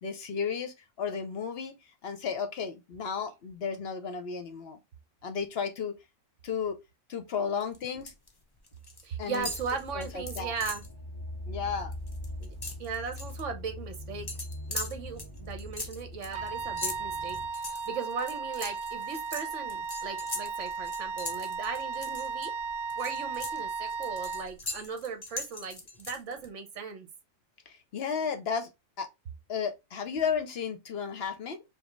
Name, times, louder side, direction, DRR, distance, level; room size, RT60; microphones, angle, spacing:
voice 1, 0.0-4.8 5.2-5.9 6.4-6.8 7.1-8.1 9.2-9.5 9.9-10.5 11.5-11.9 27.7-28.7 29.0-29.1 29.5-31.6, left 6 dB, 55° left, 0.8 m, -33 dB
sound 1, 7.6-8.3 8.6-9.0 9.3-10.9 11.3-11.5 11.8-13.4 14.3-22.5 22.9-26.5, left 2 dB, 30° left, 0.4 m, -40 dB
voice 2, 9.0-10.8 12.4-14.3 14.7-22.5 22.9-27.1, right 5 dB, 65° right, 1.2 m, -38 dB
sound 2, 9.4-17.5, left 1 dB, 15° right, 1.7 m, -42 dB
Wind instrument woodwind instrument, 16.3-24.5, right 4 dB, 80° right, 1.1 m, -35 dB
5.0 x 2.3 x 3.1 m
omnidirectional pair, 1.4 m